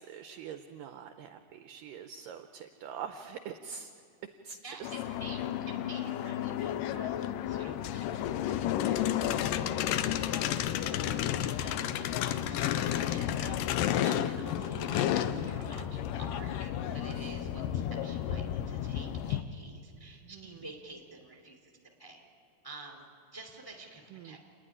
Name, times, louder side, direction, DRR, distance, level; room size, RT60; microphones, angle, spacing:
voice 1, 0.0-3.9 4.4-4.9 11.1-11.3 14.7-14.9 20.2-20.6 24.1-24.4, right 7 dB, 80° right, 7 dB, 2.0 m, -44 dB
voice 2, 4.6-10.3 11.3-21.7 22.0-22.2 22.6-23.1 23.3-24.4, right 2 dB, 10° left, 1 dB, 1.7 m, -49 dB
sound 1, 4.8-19.4, left 11 dB, 90° left, 1.9 m, -32 dB
29.0 x 10.5 x 9.9 m, 2.6 s
omnidirectional pair, 4.6 m